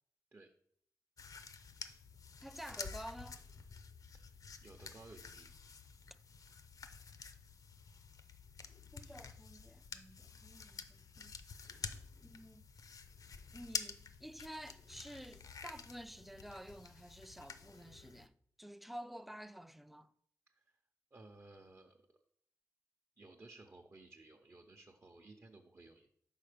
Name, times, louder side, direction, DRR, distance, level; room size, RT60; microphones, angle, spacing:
sound 1, 1.2-18.3, left 5 dB, 65° left, 0.5 m, -49 dB
voice 1, 2.4-3.4 8.9-11.3 12.2-12.7 13.5-20.1, equal, ahead, 0.3 m, -51 dB
voice 2, 4.6-5.5 20.5-20.6 21.1-22.0 23.2-26.1, right 2 dB, 40° right, 0.7 m, -57 dB
5.6 x 4.2 x 5.0 m
cardioid pair, 60°, 6 cm